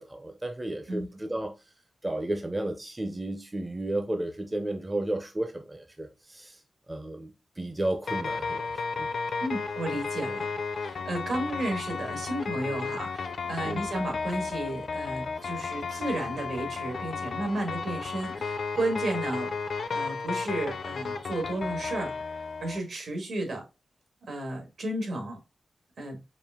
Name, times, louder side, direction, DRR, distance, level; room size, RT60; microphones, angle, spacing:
voice 1, 0.0-1.5 2.0-6.6 6.9-9.1 13.6-13.9, right 1 dB, 15° right, 0.5 m, -33 dB
sound 1, 8.1-22.8, left 4 dB, 70° left, 0.5 m, -33 dB
voice 2, 9.4-10.5 10.8-19.5 19.9-23.6 24.3-25.4 26.0-26.2, right 1 dB, 70° right, 1.6 m, -33 dB
5.0 x 2.5 x 3.5 m
wide cardioid pair, 130°, 0 cm